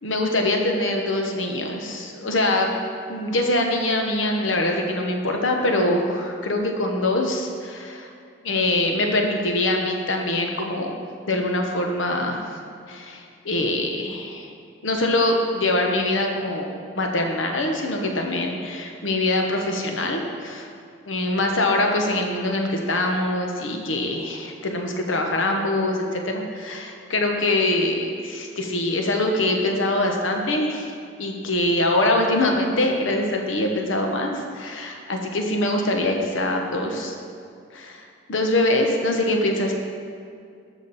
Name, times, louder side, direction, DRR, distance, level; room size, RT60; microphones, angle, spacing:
voice 1, 0.0-2.7 3.1-8.1 8.4-11.0 11.3-12.6 12.9-14.5 14.8-16.7 17.0-20.7 21.1-30.9 31.2-37.1 37.7-38.0 38.3-39.7, left 1 dB, 85° left, 2 dB, 1.1 m, -23 dB
13.0 x 5.2 x 4.2 m, 2.3 s
head